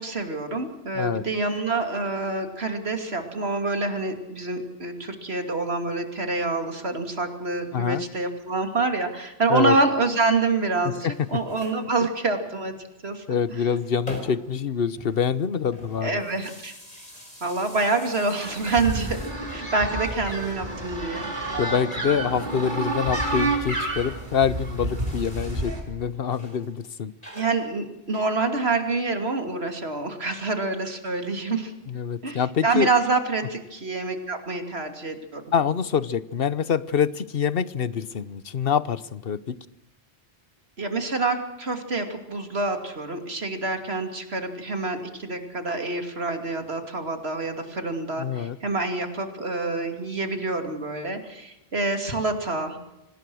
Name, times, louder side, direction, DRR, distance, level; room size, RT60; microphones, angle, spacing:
voice 1, 0.0-12.7 13.0-13.2 16.0-16.7 17.4-19.2 19.5-21.3 27.3-31.7 32.2-35.4 40.8-52.8, right 3 dB, 75° right, 7 dB, 3.0 m, -27 dB
voice 2, 7.7-8.0 9.5-9.8 10.8-11.1 13.3-16.2 21.6-27.1 31.9-32.9 35.5-39.6 48.2-48.6, left 7 dB, 65° left, 17 dB, 1.1 m, -25 dB
sound 1, 11.0-11.9 13.3-14.6 14.9-19.7 20.0-21.1 22.2-25.8 26.3-26.7 27.2-28.8, left 1 dB, 35° left, 5.6 m, -46 dB
sound 2, 18.4-25.8, right 2 dB, 45° right, 4.9 m, -29 dB
25.5 x 19.0 x 6.3 m, 0.92 s
omnidirectional pair, 1.1 m